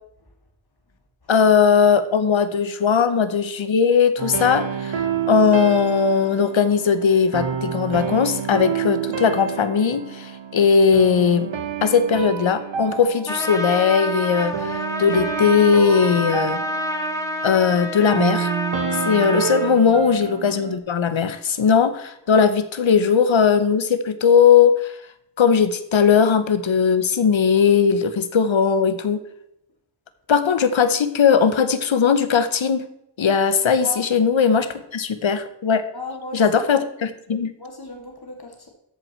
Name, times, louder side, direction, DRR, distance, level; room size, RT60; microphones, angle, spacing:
voice 1, 1.3-5.0 5.3-11.5 11.8-16.6 17.4-18.5 19.0-24.9 25.4-29.2 30.3-32.8 33.2-35.8 36.3-37.5, left 6 dB, 80° left, 11 dB, 0.9 m, -18 dB
sound 1, 4.2-20.8, right 7 dB, 70° right, 1.1 m, -29 dB
Trumpet, 13.3-19.8, equal, 5° left, 1.8 m, -28 dB
voice 2, 19.0-19.3 22.2-22.3 25.4-25.5 33.8-34.1 35.9-36.6 37.6-38.7, left 2 dB, 55° left, 2 dB, 2.5 m, -37 dB
13.5 x 5.4 x 4.4 m, 0.78 s
wide cardioid pair, 50°, 45 cm